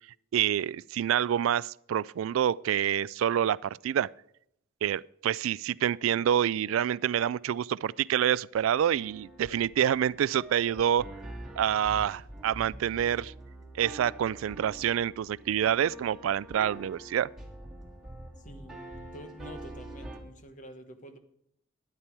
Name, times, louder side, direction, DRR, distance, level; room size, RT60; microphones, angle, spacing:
voice 1, 0.3-4.1 4.8-11.1 11.6-13.3 13.8-17.3, right 9 dB, 85° right, 0.3 m, -27 dB
sound 1, 8.5-20.2, right 1 dB, 5° right, 2.5 m, -46 dB
voice 2, 18.4-21.2, equal, 40° left, 1.3 m, -48 dB
12.0 x 9.8 x 4.6 m
head